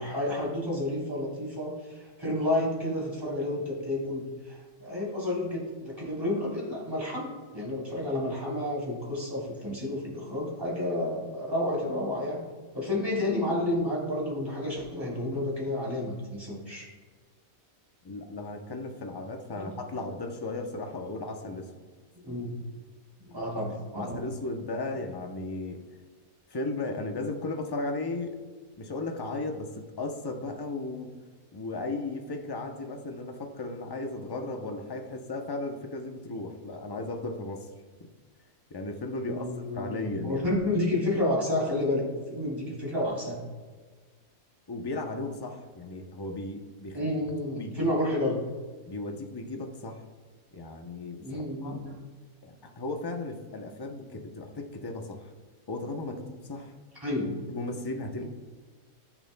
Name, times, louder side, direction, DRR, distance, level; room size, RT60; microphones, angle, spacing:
voice 1, 0.0-12.4 12.7-16.9 19.6-19.7 22.1-22.6 23.2-24.2 39.2-43.4 46.9-48.4 51.2-51.9 56.0-56.3 57.0-57.4 58.2-58.3, left 1 dB, 15° right, -4 dB, 3.4 m, -30 dB
voice 2, 18.0-21.7 24.0-25.8 26.5-28.4 28.8-31.1 31.5-37.7 38.0-38.1 38.7-39.5 39.7-40.5 44.7-47.1 47.6-47.9 48.9-50.0 50.5-51.8 52.4-55.3 55.7-56.2 56.5-56.7 57.5-58.2, left 2 dB, 30° left, 4 dB, 0.4 m, -35 dB
18.5 x 7.2 x 2.2 m, 1.4 s
omnidirectional pair, 1.6 m